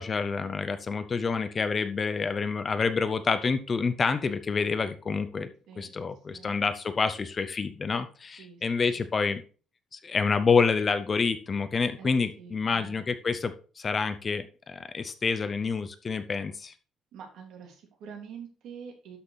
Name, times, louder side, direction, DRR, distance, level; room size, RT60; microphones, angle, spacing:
voice 1, 0.0-5.5 5.8-9.4 9.9-16.7, left 5 dB, 25° left, 11 dB, 0.7 m, -28 dB
voice 2, 12.4-13.1 17.1-19.2, right 7 dB, 65° right, 2 dB, 3.1 m, -46 dB
12.0 x 5.9 x 4.1 m, 0.37 s
cardioid pair, 160°, 0 cm